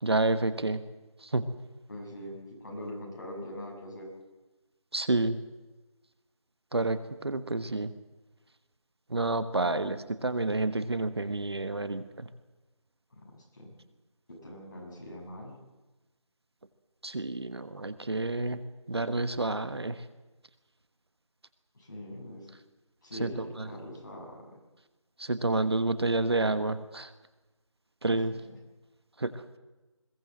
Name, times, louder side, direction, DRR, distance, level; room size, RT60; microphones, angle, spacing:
voice 1, 0.0-0.8 1.2-1.5 4.9-5.4 6.7-7.9 9.1-12.3 17.0-18.6 18.9-20.0 23.2-23.4 25.2-27.1 28.0-28.3 29.2-29.4, right 2 dB, 50° right, 12 dB, 1.3 m, -29 dB
voice 2, 1.9-4.1 9.6-10.0 13.1-13.7 14.3-15.6 21.7-22.5 23.0-24.6 28.1-28.4, left 1 dB, 35° left, -2 dB, 6.4 m, -43 dB
21.5 x 17.5 x 7.6 m, 1.1 s
figure-of-eight pair, 175°, 17 cm